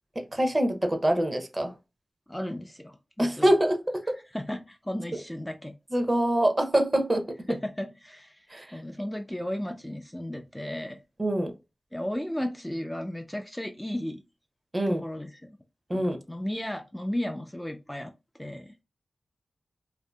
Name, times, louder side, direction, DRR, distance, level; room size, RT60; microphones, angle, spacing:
voice 1, 0.2-1.7 3.2-4.2 5.9-7.4 8.5-8.8 11.2-11.5 14.7-15.0 15.9-16.2, right 1 dB, 30° right, 0.6 m, -25 dB
voice 2, 2.3-3.5 4.3-5.7 7.5-11.0 11.9-14.2 15.0-15.6 15.9-18.1 18.4-18.7, left 1 dB, 10° left, 0.3 m, -34 dB
2.6 x 2.5 x 2.2 m
cardioid pair, 55°, 0 cm